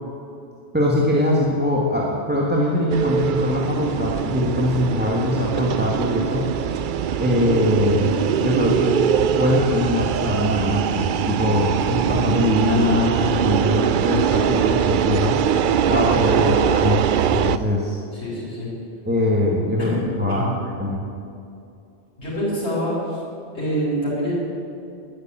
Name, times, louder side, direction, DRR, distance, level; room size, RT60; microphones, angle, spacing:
voice 1, 0.7-6.5 7.2-9.0 9.4-15.4 15.9-18.0 19.1-21.0, left 1 dB, 10° right, -4 dB, 1.5 m, -22 dB
sound 1, 2.9-17.6, right 8 dB, 60° right, 0.6 m, -22 dB
voice 2, 18.1-18.7 19.8-20.0 20.3-20.5 22.2-23.2 23.5-24.3, equal, 75° left, -8 dB, 4.7 m, -26 dB
12.0 x 10.5 x 8.9 m, 2.6 s
omnidirectional pair, 1.1 m